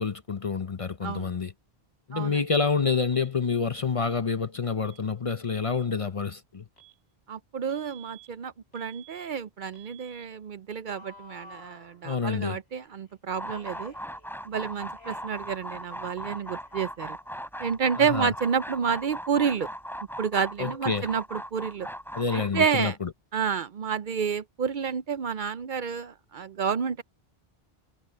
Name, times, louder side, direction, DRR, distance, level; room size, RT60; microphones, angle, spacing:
voice 1, 0.0-1.5 2.1-6.6 12.0-12.6 18.0-18.3 20.6-21.1 22.1-23.1, left 5 dB, 40° left, 0.6 m, -28 dB
voice 2, 2.1-2.4 7.3-13.9 14.5-17.2 17.6-19.7 20.2-21.9 22.3-23.0 23.3-27.0, right 6 dB, 60° right, 0.7 m, -29 dB
Alarm, 3.1-3.3 4.0-4.2 4.8-5.0 5.6-5.9 6.8-7.0 7.7-8.3 8.7-9.3 9.7-10.3 10.9-12.4 13.4-14.6 14.9-15.5 15.8-17.5, right 2 dB, 85° left, 4.3 m, -53 dB
sound 1, 13.3-22.6, equal, ahead, 4.2 m, -39 dB
omnidirectional pair, 1.1 m